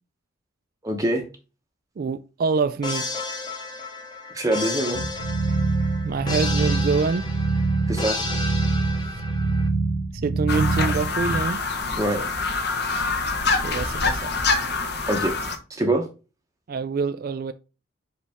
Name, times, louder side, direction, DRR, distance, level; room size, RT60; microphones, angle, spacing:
voice 1, 0.8-1.2 4.3-5.0 7.9-8.2 12.0-12.2 15.1-15.3 15.8-16.1, right 1 dB, 15° right, 0.8 m, -23 dB
voice 2, 2.0-3.1 6.0-7.3 10.2-11.6 13.6-14.3 16.7-17.5, right 4 dB, 45° right, 0.3 m, -25 dB
sound 1, 2.8-9.7, left 3 dB, 20° left, 1.0 m, -32 dB
sound 2, 4.9-11.4, right 3 dB, 75° right, 1.2 m, -25 dB
sound 3, 10.5-15.6, left 3 dB, 55° left, 1.0 m, -25 dB
5.3 x 5.2 x 3.4 m
head